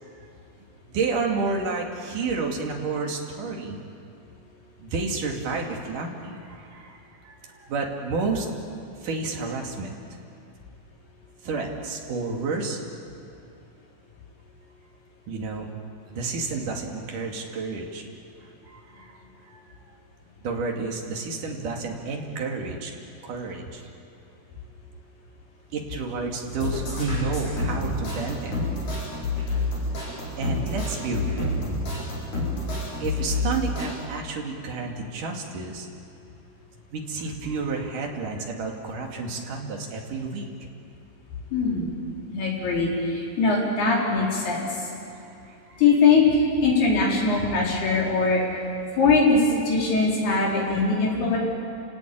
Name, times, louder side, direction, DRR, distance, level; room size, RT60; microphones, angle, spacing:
voice 1, 0.9-3.8 4.8-8.5 9.0-9.9 11.4-12.8 15.3-15.7 16.1-18.0 18.6-19.2 19.5-19.6 20.4-22.9 23.2-23.8 25.7-28.5 30.4-31.6 33.0-35.9 36.9-40.4 45.4-45.8 48.9-49.0, right 4 dB, 55° right, 1 dB, 3.8 m, -30 dB
sound 1, 26.5-33.9, left 2 dB, 45° left, 8.7 m, -28 dB
voice 2, 41.5-41.9 42.3-44.7 45.8-48.4 49.0-51.4, left 4 dB, 70° left, -3 dB, 6.4 m, -21 dB
30.0 x 18.0 x 8.8 m, 2.7 s
omnidirectional pair, 4.7 m